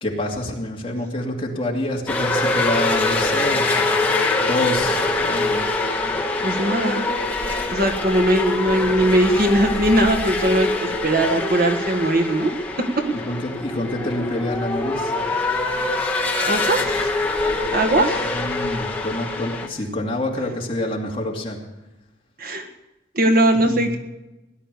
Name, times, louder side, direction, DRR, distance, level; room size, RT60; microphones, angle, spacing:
voice 1, 0.0-3.7 4.5-5.7 13.3-15.1 18.3-21.6 23.5-23.8, left 1 dB, 30° left, -1 dB, 2.6 m, -27 dB
sound 1, 2.1-19.7, left 2 dB, 10° left, 1.5 m, -24 dB
voice 2, 6.4-7.1 7.7-12.5 16.5-17.1 17.7-18.3 22.4-22.7 23.1-24.0, right 1 dB, 50° right, 5 dB, 1.6 m, -20 dB
18.0 x 11.0 x 6.8 m, 1.0 s
head